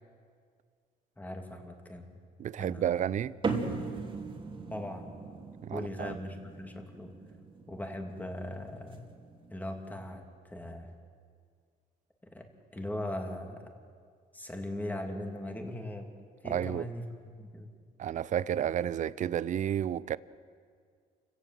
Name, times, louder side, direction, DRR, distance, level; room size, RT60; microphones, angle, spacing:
voice 1, 1.2-2.2 2.6-3.1 4.7-5.2 5.7-7.1 7.7-9.0 9.5-10.9 12.3-12.4 12.7-13.7 14.3-16.1 16.4-17.7, left 1 dB, 10° left, 2.9 m, -39 dB
voice 2, 2.4-3.3 5.6-6.2 16.4-16.9 18.0-20.2, right 10 dB, 45° right, 0.6 m, -31 dB
sound 1, 3.4-10.2, right 4 dB, 30° right, 2.9 m, -39 dB
29.0 x 17.0 x 7.8 m
cardioid pair, 110°, 17 cm